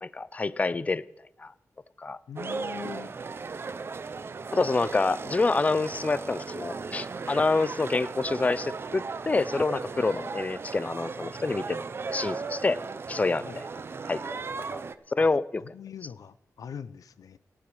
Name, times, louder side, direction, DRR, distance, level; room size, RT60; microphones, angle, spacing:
voice 1, 0.0-1.1 1.4-1.5 2.0-2.2 4.5-12.8 13.1-13.6 14.1-14.4 14.7-14.8 15.1-15.6, left 3 dB, 25° left, 19 dB, 0.4 m, -27 dB
voice 2, 2.3-3.1 13.5-13.6 15.2-15.3 15.6-17.4, left 7 dB, 85° left, 15 dB, 0.6 m, -42 dB
sound 1, 2.4-14.9, right 4 dB, 40° right, 0.6 m, -37 dB
17.5 x 10.0 x 4.8 m, 0.91 s
wide cardioid pair, 130°, 6 cm